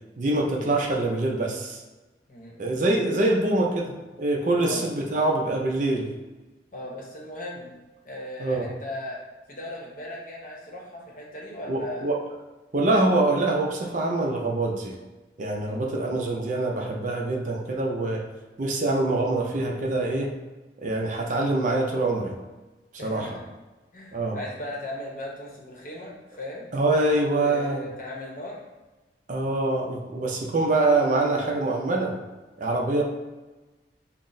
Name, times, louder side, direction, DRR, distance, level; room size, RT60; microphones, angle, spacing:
voice 1, 0.2-1.8 2.6-6.1 8.4-8.7 11.7-12.2 12.7-15.0 15.4-18.2 18.6-20.4 20.8-22.3 23.0-23.4 24.1-24.4 26.7-27.8 29.3-32.2 32.6-33.0, right 2 dB, 45° right, 0 dB, 0.5 m, -24 dB
voice 2, 6.7-7.7 8.0-9.2 9.5-12.1 15.6-15.9 23.0-23.4 23.9-26.7 27.4-28.6, left 1 dB, 45° left, -3 dB, 0.8 m, -37 dB
5.7 x 2.0 x 2.6 m, 1.2 s
head